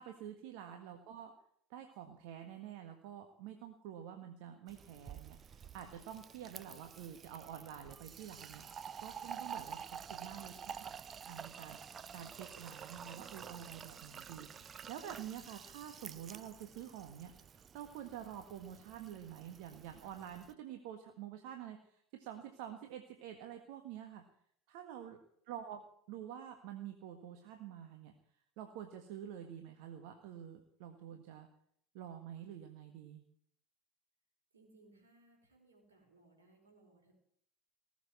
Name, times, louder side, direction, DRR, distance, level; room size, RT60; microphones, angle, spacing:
voice 1, 0.0-1.3 1.7-10.8 11.3-24.2 24.7-25.2 25.5-25.8 26.1-28.1 28.6-31.5 31.9-33.2, right 10 dB, 65° right, 6 dB, 1.6 m, -48 dB
Fill (with liquid), 4.7-20.5, right 7 dB, 35° right, 0.6 m, -50 dB
voice 2, 34.5-37.1, right 2 dB, 85° right, 2 dB, 5.1 m, -66 dB
19.0 x 7.2 x 9.5 m, 0.65 s
figure-of-eight pair, 70°, 0 cm